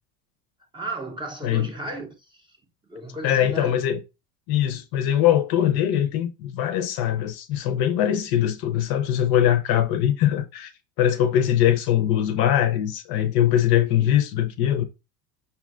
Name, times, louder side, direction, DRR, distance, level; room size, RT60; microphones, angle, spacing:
voice 1, 0.7-2.6 2.9-3.8 13.9-14.1, right 2 dB, 10° right, 0.6 m, -35 dB
voice 2, 3.2-4.0 4.5-10.7 11.0-14.8, left 11 dB, 50° left, 0.6 m, -22 dB
5.5 x 2.2 x 2.3 m
supercardioid pair, 100°, 47 cm